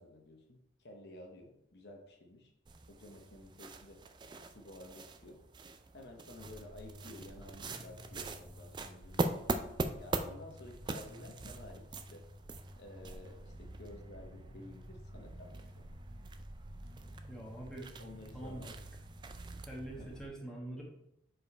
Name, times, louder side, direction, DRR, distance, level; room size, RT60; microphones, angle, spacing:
voice 1, 0.0-2.5 2.9-4.0 4.4-5.4 5.9-9.3 10.0-12.2 12.8-15.8 18.0-18.7 20.0-20.1, left 1 dB, 60° left, 2 dB, 0.8 m, -53 dB
sound 1, 2.6-20.3, right 2 dB, 25° right, 0.3 m, -43 dB
sound 2, 6.4-20.1, left 1 dB, 75° right, 2.2 m, -53 dB
voice 2, 17.3-17.9 18.3-18.7 19.6-20.8, right 1 dB, 5° left, -4 dB, 1.3 m, -44 dB
5.1 x 4.6 x 4.3 m, 0.80 s
head